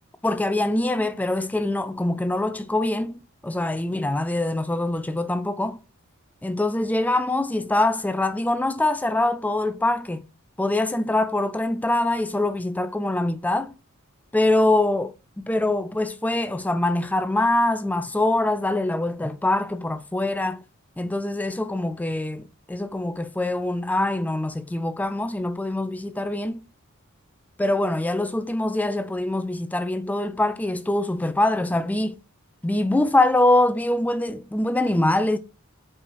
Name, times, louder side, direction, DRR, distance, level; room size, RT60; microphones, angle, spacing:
voice 1, 0.2-5.8 6.4-10.2 10.6-13.7 14.3-20.6 21.0-26.6 27.6-32.2 32.6-35.4, left 2 dB, 5° left, 0.3 m, -24 dB
5.1 x 4.9 x 4.6 m
head